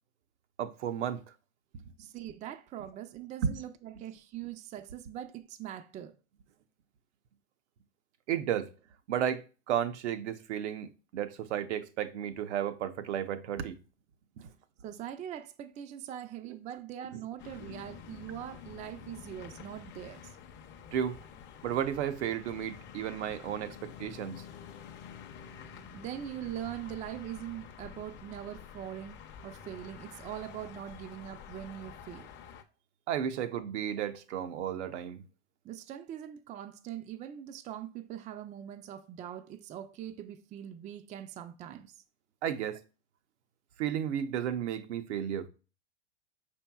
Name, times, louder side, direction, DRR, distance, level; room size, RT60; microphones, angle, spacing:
voice 1, 0.6-1.2 1.7-1.8 3.4-3.5 8.3-8.7 9.1-13.8 14.4-14.5 20.9-21.2 21.6-24.4 33.1-35.2 42.4-42.8 43.8-45.5, right 9 dB, 75° right, 0.7 m, -33 dB
voice 2, 2.0-6.1 14.8-20.4 25.9-32.3 35.6-42.0, right 11 dB, 20° right, 0.4 m, -42 dB
sound 1, 17.4-32.6, left 7 dB, 30° left, 0.6 m, -49 dB
5.2 x 4.4 x 2.2 m
hypercardioid pair, 105°, 35 cm